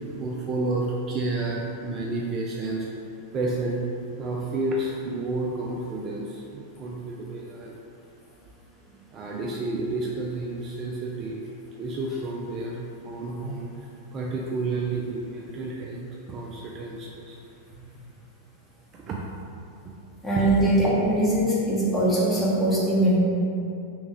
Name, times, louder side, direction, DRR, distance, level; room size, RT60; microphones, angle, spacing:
voice 1, 0.1-2.9 3.3-3.9 4.2-7.8 9.1-11.4 11.7-13.7 14.1-17.4 18.9-19.2 20.4-20.5, right 2 dB, 30° right, -2 dB, 0.4 m, -30 dB
voice 2, 20.2-23.2, right 1 dB, 10° left, -7 dB, 1.0 m, -22 dB
3.5 x 3.0 x 3.5 m, 2.6 s
figure-of-eight pair, 90°, 0 cm